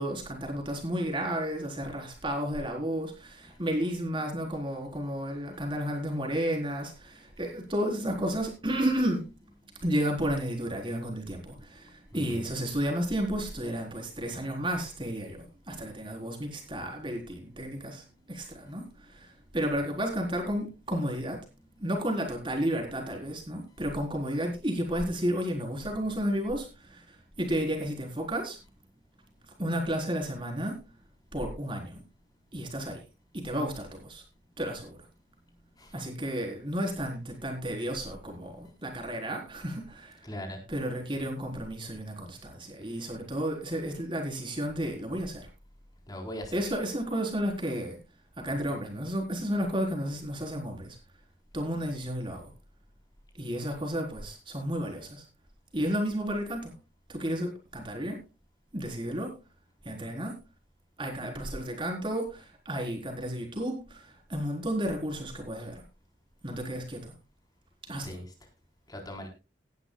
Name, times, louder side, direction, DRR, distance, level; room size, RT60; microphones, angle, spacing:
voice 1, 0.0-9.3 9.8-21.4 21.8-27.0 27.4-28.6 29.6-30.8 31.3-32.0 32.5-33.0 33.3-34.2 34.6-35.0 35.9-40.2 40.7-45.5 46.5-48.0 48.4-51.0 51.5-52.5 53.4-55.2 55.7-56.7 57.1-58.2 58.7-59.3 59.8-60.3 61.0-65.8 66.4-67.1 67.8-68.2, equal, 25° right, 2 dB, 4.2 m, -32 dB
voice 2, 12.1-12.5 35.8-36.1 40.2-40.6 46.1-46.6 68.0-68.2 68.9-69.3, equal, 20° left, 2 dB, 4.0 m, -40 dB
18.5 x 12.0 x 2.3 m, 0.28 s
head